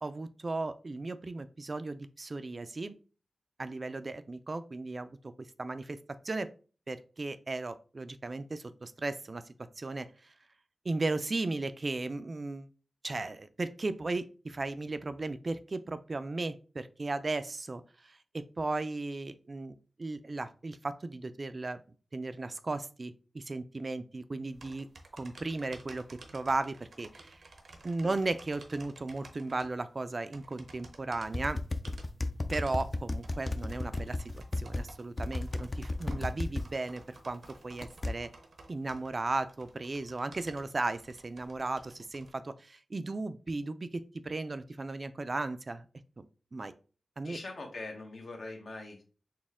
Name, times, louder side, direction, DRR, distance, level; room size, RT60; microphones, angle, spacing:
voice 1, 0.0-3.0 3.6-5.2 5.6-6.0 6.2-6.5 6.9-9.4 9.8-10.3 10.8-12.7 13.0-21.8 22.1-24.9 25.1-26.0 26.3-27.4 27.8-31.6 32.5-38.3 38.7-45.9 46.2-46.3 46.5-46.7 47.2-47.4, right 3 dB, 45° right, 12 dB, 0.3 m, -36 dB
sound 1, 24.5-42.3, right 2 dB, 80° right, 0.7 m, -54 dB
voice 2, 27.7-28.1 47.2-49.0, left 2 dB, 70° left, 1 dB, 1.0 m, -43 dB
sound 2, 31.3-34.8 35.2-36.7 37.8-38.1, left 2 dB, 35° left, 0.4 m, -33 dB
4.1 x 2.1 x 3.5 m, 0.37 s
cardioid pair, 55°, 0 cm